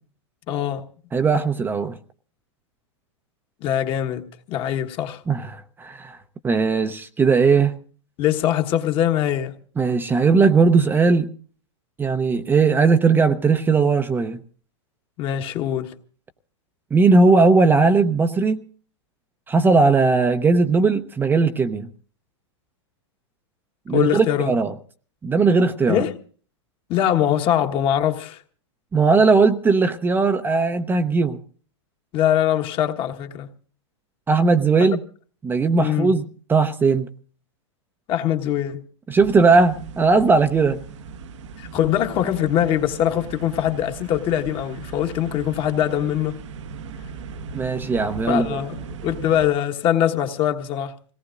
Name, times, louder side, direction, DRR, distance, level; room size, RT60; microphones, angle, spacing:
voice 1, 0.5-0.9 3.6-5.2 8.2-9.6 15.2-15.9 23.9-24.5 25.9-26.2 26.9-28.4 32.1-33.5 35.8-36.1 38.1-38.8 41.6-46.4 48.3-51.0, left 11 dB, 35° left, 1.4 m, -22 dB
voice 2, 1.1-2.0 5.3-6.2 6.4-7.8 9.8-11.3 12.0-14.4 16.9-18.6 19.5-21.9 23.9-24.7 25.2-26.0 28.9-31.4 34.3-35.0 35.4-36.2 36.5-37.1 39.1-40.8 47.5-48.6, right 4 dB, 15° right, 0.7 m, -18 dB
sound 1, 39.2-49.5, right 5 dB, 75° right, 1.1 m, -37 dB
26.5 x 18.0 x 2.5 m
hypercardioid pair, 130°, 16 cm